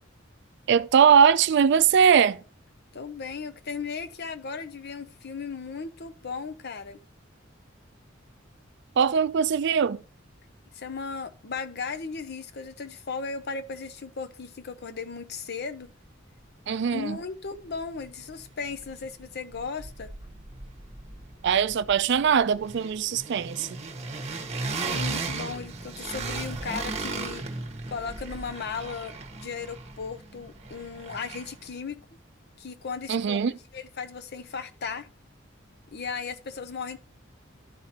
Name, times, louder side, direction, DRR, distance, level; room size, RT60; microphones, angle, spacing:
voice 1, 0.7-2.4 9.0-10.0 16.7-17.2 21.4-23.7 33.1-33.5, right 7 dB, 60° right, 0.4 m, -21 dB
voice 2, 2.9-7.0 10.7-15.9 16.9-20.1 24.8-27.5 27.9-32.0 32.6-35.1 35.9-37.0, left 5 dB, 55° left, 0.7 m, -36 dB
sound 1, 17.7-17.8 18.1-19.2 19.5-31.7, right 3 dB, 35° right, 1.1 m, -36 dB
12.0 x 4.9 x 2.9 m
head